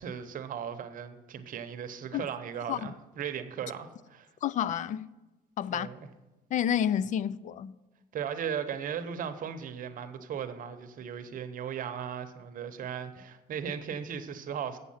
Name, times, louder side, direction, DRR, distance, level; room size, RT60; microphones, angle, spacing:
voice 1, 0.0-4.3 5.7-6.1 8.1-14.8, right 8 dB, 55° right, 0.9 m, -37 dB
voice 2, 4.4-5.1 5.6-5.9 6.5-7.7, left 9 dB, 50° left, 0.4 m, -29 dB
8.1 x 7.5 x 5.6 m
cardioid pair, 110°, 17 cm